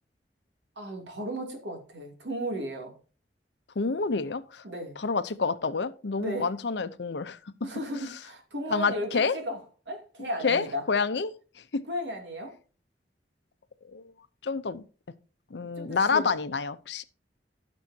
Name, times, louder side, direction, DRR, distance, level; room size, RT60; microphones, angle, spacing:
voice 1, 0.8-2.9 4.6-5.0 6.2-6.5 7.6-9.6 9.9-10.8 11.9-12.5 15.7-16.4, equal, 85° right, 2.7 m, -35 dB
voice 2, 3.8-4.6 5.0-7.4 8.7-9.3 10.4-11.3 11.7-11.8 13.9-14.0 14.4-14.8 15.5-17.0, left 4 dB, 70° left, 0.7 m, -28 dB
15.0 x 6.2 x 2.8 m
head